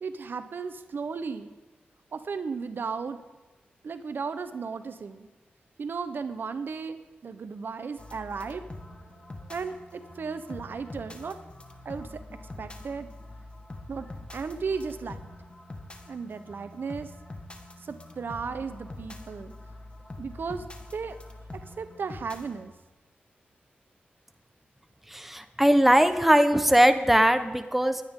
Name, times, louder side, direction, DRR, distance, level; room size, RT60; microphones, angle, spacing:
voice 1, 0.0-1.5 2.1-3.2 3.8-5.3 5.8-8.6 9.5-11.4 11.8-13.1 13.9-14.1 14.3-15.2 16.1-17.1 17.8-19.5 20.2-20.6 20.9-21.2 21.8-22.7, right 5 dB, 70° right, 10 dB, 0.8 m, -35 dB
sound 1, 8.0-22.7, left 2 dB, 30° left, 1.7 m, -44 dB
voice 2, 25.1-28.0, equal, 5° right, 9 dB, 1.0 m, -20 dB
21.5 x 9.8 x 3.7 m, 1.2 s
cardioid pair, 70°, 4 cm